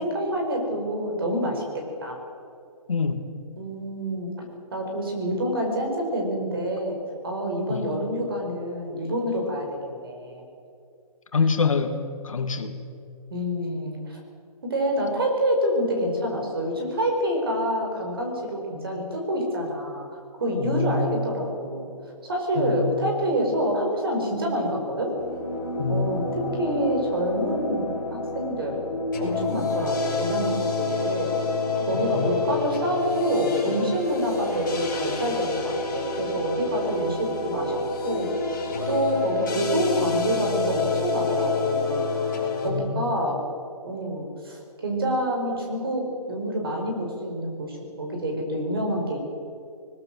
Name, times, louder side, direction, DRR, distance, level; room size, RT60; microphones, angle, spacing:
voice 1, 0.0-2.2 3.6-4.4 4.7-7.0 7.2-10.4 13.3-14.2 14.6-20.1 20.4-21.9 22.3-25.2 25.9-28.8 29.2-31.3 31.8-38.3 38.9-42.1 42.6-43.4 43.8-49.2, equal, 40° right, 2 dB, 5.2 m, -27 dB
voice 2, 2.9-3.2 7.7-7.9 11.3-12.0 12.2-12.8 20.6-21.2 22.6-23.0 25.8-26.4 31.9-32.3 42.6-43.1, left 4 dB, 60° left, 7 dB, 2.2 m, -26 dB
sound 1, 25.2-42.7, left 3 dB, 30° left, 5.1 m, -28 dB
20.5 x 20.5 x 7.7 m, 2.5 s
hypercardioid pair, 180°, 20 cm